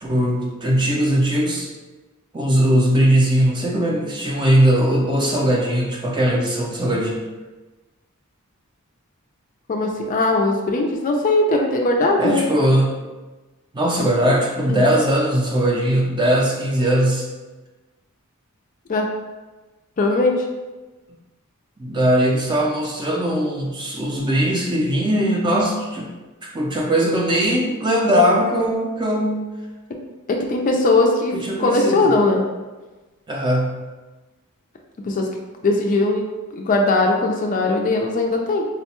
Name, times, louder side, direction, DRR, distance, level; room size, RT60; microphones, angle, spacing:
voice 1, 0.0-1.7 2.3-7.2 12.2-12.9 13.7-17.3 21.8-26.1 26.4-29.5 31.3-32.0 33.3-33.8, right 1 dB, 20° right, -2 dB, 0.5 m, -19 dB
voice 2, 9.7-12.4 14.0-14.1 14.7-14.8 18.9-19.1 20.0-20.5 30.3-31.3 31.6-32.5 35.0-35.3 35.6-36.2 36.5-38.7, left 2 dB, 35° left, 1 dB, 0.3 m, -19 dB
3.9 x 2.2 x 2.9 m, 1.2 s
head